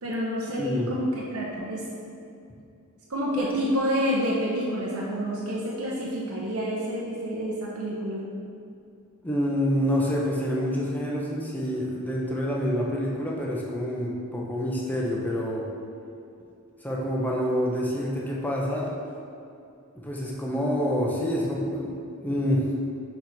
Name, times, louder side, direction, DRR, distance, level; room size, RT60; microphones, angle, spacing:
voice 1, 0.0-1.9 3.1-8.2, equal, 70° right, -4 dB, 0.8 m, -28 dB
voice 2, 0.6-0.9 9.2-15.7 16.8-18.9 20.0-21.9 22.2-22.7, equal, 10° left, -4 dB, 0.7 m, -27 dB
6.1 x 4.4 x 4.0 m, 2.5 s
head